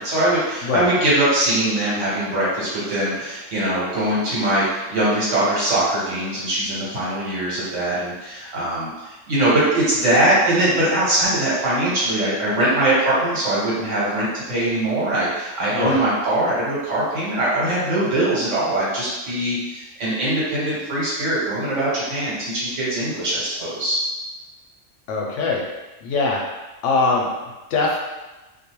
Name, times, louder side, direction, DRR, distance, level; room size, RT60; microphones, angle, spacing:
voice 1, 0.0-24.0, right 1 dB, 70° right, -8 dB, 1.4 m, -22 dB
voice 2, 15.7-16.0 25.1-25.6 26.0-26.4 26.8-28.0, left 3 dB, 75° left, -1 dB, 0.9 m, -22 dB
2.5 x 2.2 x 2.9 m, 1.1 s
omnidirectional pair, 1.3 m